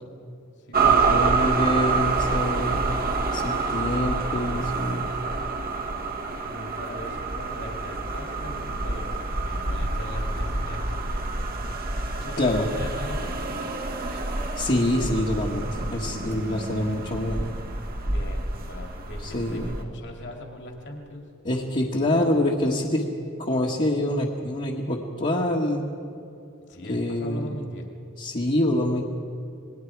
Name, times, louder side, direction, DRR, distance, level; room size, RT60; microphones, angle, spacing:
voice 1, 0.6-1.0 1.6-1.8 3.7-4.0 6.5-11.2 12.1-13.7 16.5-16.6 18.0-21.2 22.0-22.3 26.7-27.9, left 1 dB, 55° left, 2 dB, 2.5 m, -40 dB
sound 1, 0.7-19.8, right 3 dB, 45° right, 1.6 m, -27 dB
voice 2, 1.1-2.8 3.3-5.1 12.4-12.7 14.6-17.5 19.2-19.7 21.4-23.0 23.4-25.8 26.9-27.6 28.2-29.0, left 1 dB, 35° left, -3 dB, 1.6 m, -25 dB
27.5 x 20.5 x 4.7 m, 2.6 s
head